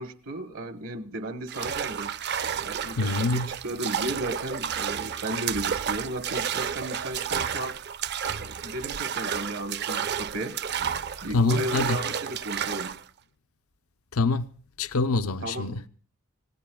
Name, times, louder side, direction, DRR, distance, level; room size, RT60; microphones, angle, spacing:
voice 1, 0.0-2.1 2.6-7.8 8.4-10.6 11.2-13.0 15.4-15.8, right 1 dB, 70° right, 1.3 m, -34 dB
sound 1, 1.5-13.0, right 8 dB, 50° right, 0.6 m, -31 dB
voice 2, 3.0-3.5 11.3-12.0 14.1-14.5 14.8-15.8, left 3 dB, 85° left, 0.7 m, -25 dB
29.0 x 16.5 x 2.3 m
head